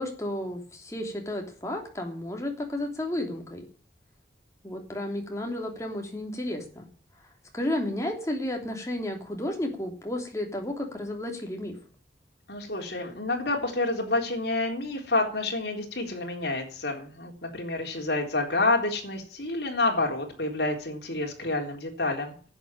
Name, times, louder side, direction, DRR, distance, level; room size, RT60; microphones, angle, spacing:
voice 1, 0.0-3.6 4.6-6.9 7.5-11.8, left 1 dB, 15° left, 2 dB, 3.0 m, -32 dB
voice 2, 12.5-22.3, left 2 dB, 65° left, 1 dB, 3.8 m, -28 dB
11.0 x 8.0 x 8.9 m, 0.42 s
head